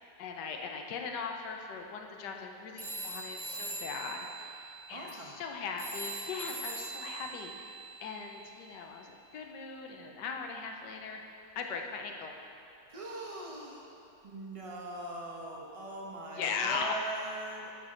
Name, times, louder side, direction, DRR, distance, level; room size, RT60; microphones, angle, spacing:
voice 1, 0.2-7.7 8.0-11.2 11.6-12.3 16.4-16.9, left 5 dB, 75° left, 3 dB, 1.4 m, -39 dB
sound 1, 2.8-8.9, right 2 dB, ahead, 1.3 m, -42 dB
voice 2, 4.9-5.3 12.9-13.8 14.2-17.7, right 2 dB, 30° right, -1 dB, 0.7 m, -41 dB
12.0 x 6.0 x 3.8 m, 2.7 s
omnidirectional pair, 1.9 m